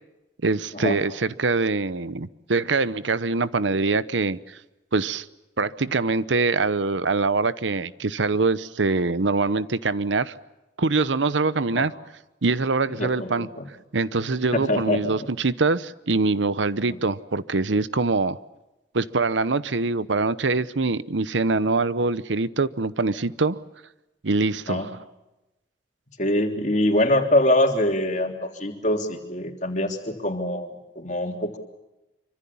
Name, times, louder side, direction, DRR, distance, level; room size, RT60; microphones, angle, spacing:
voice 1, 0.4-4.6 4.9-5.3 5.6-10.3 10.8-11.9 12.4-13.5 13.9-18.4 18.9-23.6 24.2-24.9, right 3 dB, 85° right, 16 dB, 0.9 m, -24 dB
voice 2, 13.0-13.7 14.3-15.0 16.9-17.0 24.7-24.9 26.2-31.6, left 1 dB, 40° left, 4 dB, 3.3 m, -24 dB
26.0 x 25.0 x 7.2 m, 0.98 s
head